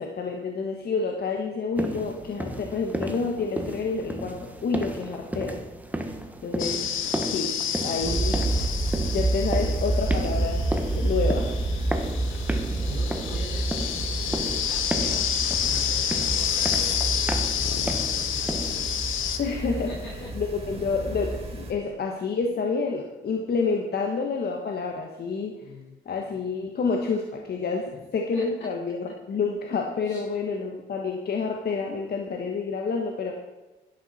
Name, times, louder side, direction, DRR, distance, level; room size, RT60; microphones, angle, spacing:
voice 1, 0.0-5.6 6.4-6.8 7.3-7.5 7.8-8.5 9.1-10.7 11.0-11.5 19.4-19.9 20.3-25.6 26.0-33.3, left 4 dB, 55° left, 2 dB, 1.6 m, -28 dB
sound 1, 1.8-19.0, right 1 dB, 10° right, 1.5 m, -34 dB
sound 2, 6.6-19.4, left 9 dB, 85° left, 1.2 m, -29 dB
sound 3, 8.0-21.7, right 2 dB, 30° right, 3.8 m, -29 dB
voice 2, 12.7-15.2 15.6-18.7 19.7-20.3 25.6-25.9 28.3-28.4 30.0-30.2, left 2 dB, 70° left, -7 dB, 5.0 m, -43 dB
12.5 x 11.0 x 4.4 m, 1.1 s
cardioid pair, 90°, 20 cm